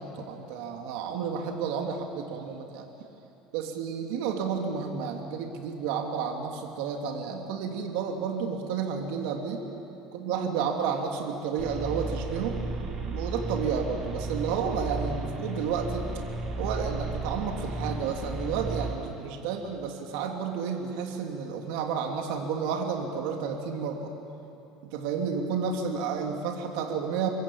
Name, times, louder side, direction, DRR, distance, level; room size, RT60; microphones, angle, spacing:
voice 1, 0.0-2.9 3.5-9.6 10.1-12.6 13.1-16.1 16.6-24.1 24.8-27.3, right 6 dB, 75° right, 3 dB, 2.7 m, -31 dB
sound 1, 11.6-18.9, right 2 dB, 35° right, 4.9 m, -34 dB
26.5 x 22.0 x 8.6 m, 2.9 s
cardioid pair, 135°, 0 cm